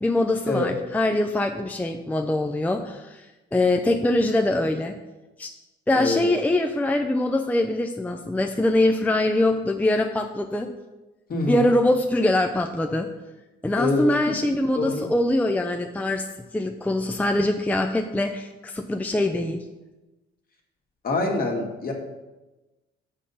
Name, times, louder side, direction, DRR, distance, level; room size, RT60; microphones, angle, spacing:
voice 1, 0.0-3.3 3.5-5.0 5.4-5.5 5.9-10.7 11.5-13.1 13.6-16.3 16.5-19.6, left 1 dB, 10° left, 5 dB, 0.5 m, -23 dB
voice 2, 11.3-11.6 13.8-14.4 14.7-15.0 21.0-21.9, left 2 dB, 50° left, 1 dB, 1.8 m, -25 dB
6.5 x 5.4 x 5.6 m, 1.1 s
cardioid pair, 90°, 20 cm